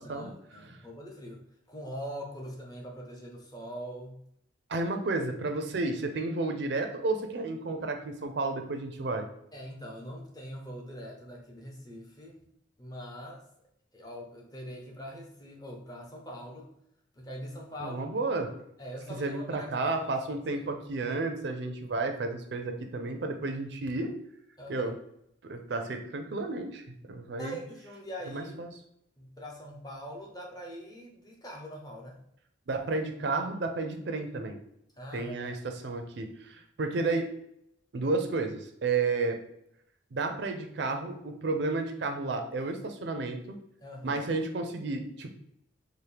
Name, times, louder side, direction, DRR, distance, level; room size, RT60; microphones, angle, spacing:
voice 1, 0.0-1.4 1.7-4.2 9.5-12.4 12.8-13.4 13.9-16.7 17.2-18.0 18.8-20.2 20.5-20.7 24.6-24.9 27.4-28.5 29.2-32.2 35.0-35.6 43.8-44.3, equal, 20° left, 0 dB, 0.6 m, -42 dB
voice 2, 4.7-9.3 17.8-18.5 19.2-24.1 24.7-24.9 25.4-27.6 28.3-28.7 32.7-34.6 35.1-37.3 37.9-39.4 40.1-43.4 44.0-45.3, right 3 dB, 60° right, 5 dB, 0.5 m, -32 dB
4.2 x 2.1 x 3.3 m, 0.75 s
head